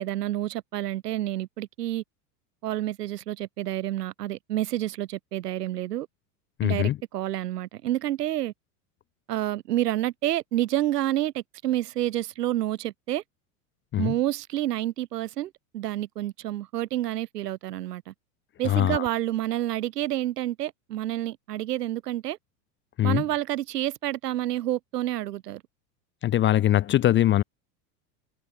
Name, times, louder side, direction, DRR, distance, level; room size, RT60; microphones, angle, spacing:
voice 1, 0.0-2.0 2.6-6.1 6.6-8.5 9.3-13.2 14.0-18.1 18.6-22.4 23.0-25.6, right 14 dB, 80° right, 6.3 m, -29 dB
voice 2, 6.6-7.0 13.9-14.1 18.6-19.0 23.0-23.2 26.2-27.4, left 13 dB, 25° left, 0.6 m, -22 dB
hypercardioid pair, 115°, 46 cm